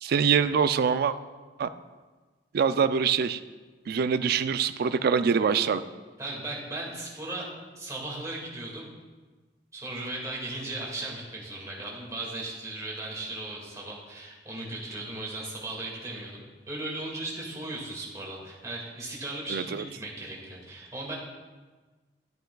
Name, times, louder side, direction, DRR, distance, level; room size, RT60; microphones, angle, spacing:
voice 1, 0.0-1.1 1.6-1.7 2.5-3.4 3.9-5.8 19.5-19.8, right 6 dB, 60° right, 12 dB, 0.3 m, -24 dB
voice 2, 6.2-7.5 7.8-8.9 9.7-21.1, right 2 dB, 20° right, -4 dB, 2.0 m, -37 dB
11.5 x 9.0 x 2.3 m, 1.3 s
head